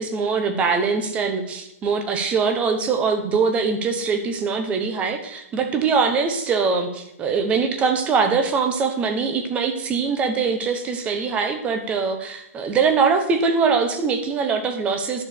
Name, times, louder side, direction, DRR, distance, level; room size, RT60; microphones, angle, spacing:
voice 1, 0.0-15.2, right 5 dB, 15° right, 7 dB, 1.1 m, -22 dB
10.5 x 6.9 x 6.8 m, 0.82 s
hypercardioid pair, 160°, 8 cm